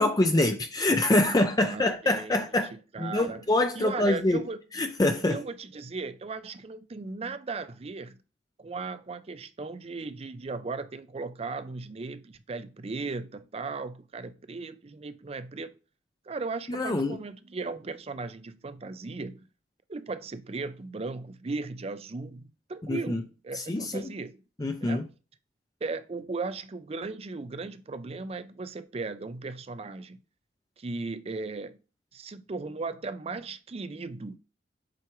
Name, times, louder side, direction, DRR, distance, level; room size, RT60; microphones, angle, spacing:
voice 1, 0.0-2.7 3.0-4.4 4.8-5.4 16.7-17.2 22.9-23.2 23.5-24.1 24.6-25.0, left 2 dB, 20° left, 0.5 m, -25 dB
voice 2, 1.3-2.4 2.7-3.4 3.7-4.6 5.3-8.2 8.6-15.7 16.3-19.5 19.9-24.4 24.8-25.1 25.8-30.2 30.8-31.8 32.1-34.4, right 3 dB, 35° right, 0.5 m, -37 dB
7.6 x 4.7 x 3.1 m
head